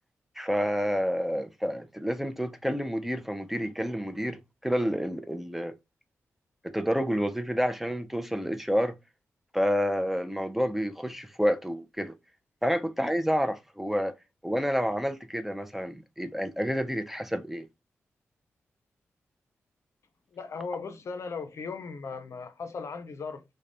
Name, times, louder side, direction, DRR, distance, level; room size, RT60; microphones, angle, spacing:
voice 1, 0.4-5.7 6.6-9.0 9.5-12.1 12.6-14.1 14.4-17.7, equal, 5° right, 0.4 m, -29 dB
voice 2, 20.3-23.4, left 4 dB, 65° left, 0.5 m, -37 dB
2.5 x 2.1 x 3.2 m
cardioid pair, 50°, 5 cm